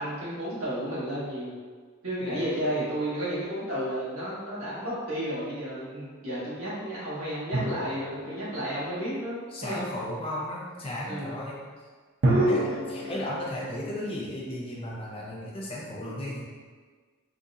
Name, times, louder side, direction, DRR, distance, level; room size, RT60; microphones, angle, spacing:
voice 1, 0.0-1.5 2.0-9.9 11.0-11.4 12.2-12.6 13.0-13.2 16.0-16.1, right 1 dB, 75° right, -10 dB, 1.4 m, -31 dB
sound 1, 7.5-9.8 12.2-15.1, right 1 dB, 55° right, 0.5 m, -32 dB
voice 2, 9.5-11.6 12.5-12.6 12.9-16.4, left 1 dB, 25° left, -5 dB, 0.5 m, -35 dB
4.0 x 2.6 x 2.3 m, 1.5 s
head